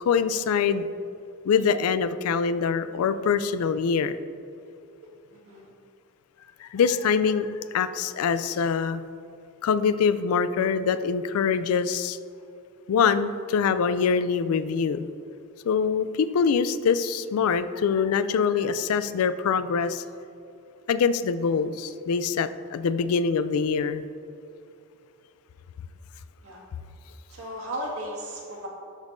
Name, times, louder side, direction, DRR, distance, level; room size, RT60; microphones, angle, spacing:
voice 1, 0.1-0.9 1.5-4.2 6.6-9.0 9.6-12.2 12.9-15.1 15.6-20.0 20.9-24.1, left 6 dB, 75° left, 13 dB, 0.3 m, -24 dB
voice 2, 5.3-5.7 26.4-26.6 27.3-28.7, equal, 80° right, -3 dB, 1.8 m, -35 dB
12.5 x 5.3 x 2.6 m, 2.6 s
head